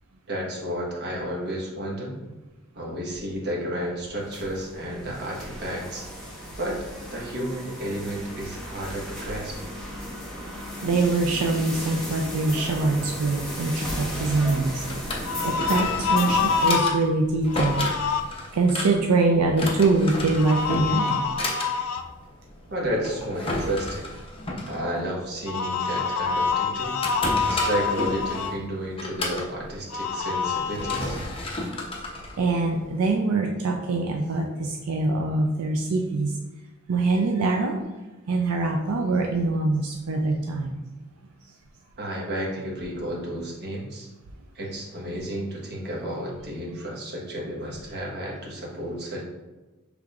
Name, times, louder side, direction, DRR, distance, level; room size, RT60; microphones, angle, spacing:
voice 1, 0.3-2.2 2.7-6.1 6.6-6.8 7.1-9.6 22.7-24.0 24.6-27.0 27.4-31.2 42.0-44.1 44.5-49.2, equal, 50° right, -3 dB, 1.2 m, -32 dB
sound 1, 4.2-16.7, equal, 5° left, 1.1 m, -35 dB
voice 2, 10.8-14.7 15.4-17.9 18.5-21.2 32.4-36.3 36.9-37.8 38.3-40.8, right 3 dB, 85° right, 2 dB, 0.4 m, -24 dB
Drawer open or close, 14.8-33.1, left 2 dB, 25° left, 0.7 m, -33 dB
sound 2, 15.2-17.0 17.5-18.2 20.4-22.0 25.5-28.5 29.9-31.0, left 5 dB, 75° left, 0.4 m, -26 dB
6.2 x 3.4 x 2.4 m, 1.2 s
head